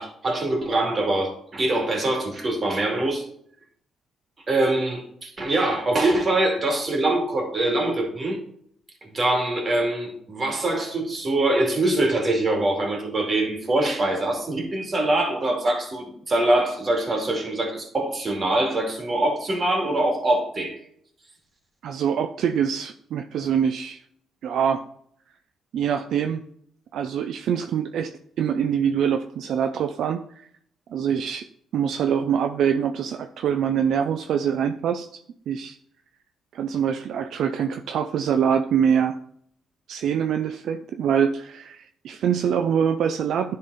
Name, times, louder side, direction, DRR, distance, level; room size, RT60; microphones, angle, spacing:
voice 1, 0.0-3.3 4.5-8.4 9.0-20.8, right 2 dB, 35° right, 2 dB, 2.4 m, -23 dB
voice 2, 21.8-24.0 24.4-24.8 25.7-26.4 26.9-30.5 30.9-31.5 31.7-35.8 36.5-39.2 39.9-43.6, right 8 dB, 70° right, 7 dB, 0.4 m, -24 dB
10.5 x 3.9 x 4.0 m, 0.67 s
cardioid pair, 90°, 0 cm